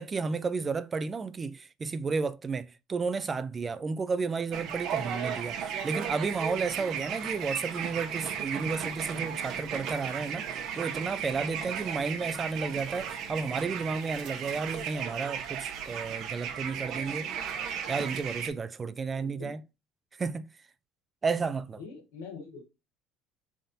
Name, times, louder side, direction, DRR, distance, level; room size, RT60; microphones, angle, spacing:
voice 1, 0.0-10.5 10.8-17.3 17.9-19.6 20.2-20.5 21.2-21.8, right 4 dB, 30° right, 0.4 m, -32 dB
sound 1, 4.5-18.5, right 8 dB, 60° right, 0.9 m, -35 dB
voice 2, 19.1-19.6 21.8-22.7, left 5 dB, 90° left, 1.6 m, -44 dB
3.8 x 3.5 x 2.7 m
hypercardioid pair, 75°, 0 cm